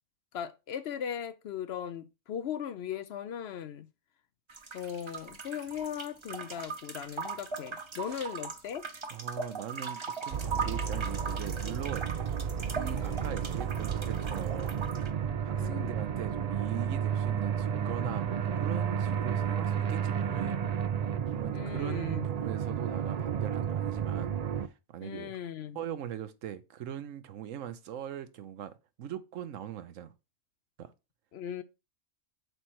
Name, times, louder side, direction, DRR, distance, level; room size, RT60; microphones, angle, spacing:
voice 1, 0.3-3.9 4.7-8.8 13.0-13.4 15.6-16.1 21.5-22.3 25.0-25.8 31.3-31.6, left 9 dB, 65° left, 0.8 m, -38 dB
sound 1, 4.5-15.1, right 5 dB, 30° right, 0.7 m, -39 dB
voice 2, 9.1-12.1 12.7-14.8 15.4-20.5 21.3-24.3 24.6-25.4 25.7-30.1 30.8-30.9, right 10 dB, 85° right, 1.1 m, -40 dB
sound 2, 10.3-24.7, right 8 dB, 60° right, 0.4 m, -32 dB
7.8 x 3.2 x 4.4 m
omnidirectional pair, 1.3 m